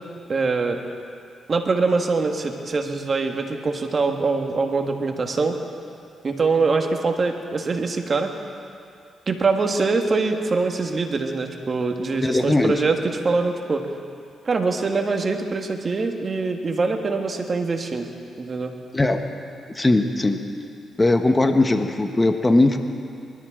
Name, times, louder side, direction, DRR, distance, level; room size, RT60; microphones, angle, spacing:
voice 1, 0.3-0.8 1.5-5.6 6.2-8.3 9.3-13.9 14.4-18.1 18.4-18.7, right 4 dB, 50° right, 4 dB, 1.7 m, -23 dB
voice 2, 12.2-12.7 18.9-19.2 19.7-20.4 21.0-22.8, left 2 dB, 25° left, 6 dB, 1.3 m, -19 dB
24.5 x 13.0 x 3.8 m, 2.5 s
supercardioid pair, 55°, 0 cm